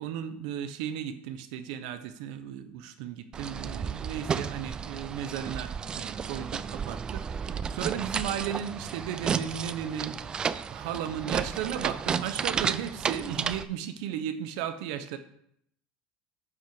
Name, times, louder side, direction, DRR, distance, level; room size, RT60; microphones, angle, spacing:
voice 1, 0.0-10.4 10.7-15.2, right 9 dB, 80° right, 10 dB, 1.1 m, -35 dB
sound 1, 3.3-13.6, right 6 dB, 20° right, 0.4 m, -32 dB
9.5 x 6.0 x 6.1 m, 0.72 s
cardioid pair, 160°, 4 cm